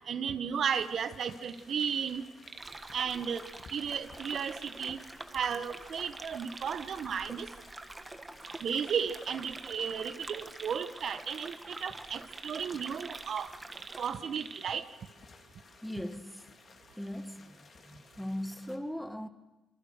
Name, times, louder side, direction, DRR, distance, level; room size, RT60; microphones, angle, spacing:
voice 1, 0.1-2.2 2.9-3.4 3.7-5.0 5.3-7.5 8.6-13.5 14.0-14.8, right 7 dB, 60° right, 10 dB, 1.2 m, -34 dB
sound 1, 0.6-18.8, left 4 dB, 45° left, 3.2 m, -58 dB
sound 2, 1.4-2.1 2.4-2.9 3.5-4.9 6.1-7.0 8.4-9.9 10.2-14.8 15.3-15.4, right 5 dB, 40° right, 1.5 m, -48 dB
sound 3, 2.6-14.1, right 2 dB, 15° right, 1.4 m, -47 dB
voice 2, 15.8-16.4 17.0-17.6 17.9-19.3, left 1 dB, 5° left, 9 dB, 1.8 m, -39 dB
27.5 x 24.0 x 6.5 m, 1.0 s
cardioid pair, 90°, 0 cm